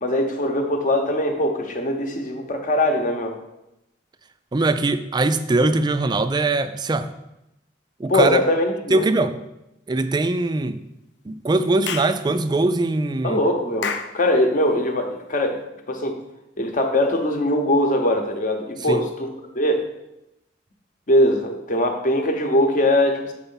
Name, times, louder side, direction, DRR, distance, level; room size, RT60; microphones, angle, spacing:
voice 1, 0.0-3.4 8.1-9.0 13.2-15.6 15.9-16.2 16.6-19.9 21.1-23.3, left 1 dB, 45° left, 4 dB, 0.9 m, -21 dB
voice 2, 4.5-7.1 8.0-8.4 8.9-9.3 9.9-10.8 11.3-13.4 18.9-19.0, right 2 dB, 25° right, 11 dB, 0.4 m, -21 dB
Clapping / Chirp tweet, 11.9-12.2 13.8-14.2, left 6 dB, 70° left, 0.6 m, -28 dB
6.9 x 4.4 x 5.5 m, 0.88 s
head